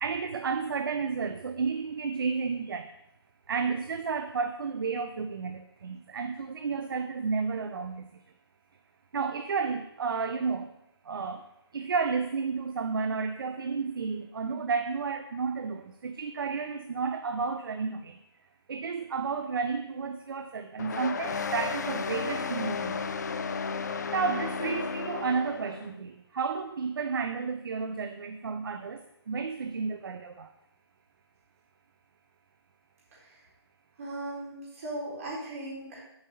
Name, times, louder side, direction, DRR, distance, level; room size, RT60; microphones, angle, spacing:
voice 1, 0.0-2.9 3.5-8.2 9.1-10.7 11.0-11.4 11.7-18.2 18.7-23.0 24.1-30.5, right 5 dB, 55° right, 9 dB, 0.6 m, -32 dB
sound 1, 20.8-25.9, left 5 dB, 40° left, 0.5 m, -33 dB
voice 2, 34.0-36.0, right 1 dB, 35° right, -5 dB, 3.8 m, -38 dB
8.0 x 5.2 x 6.6 m, 0.84 s
hypercardioid pair, 175°, 14 cm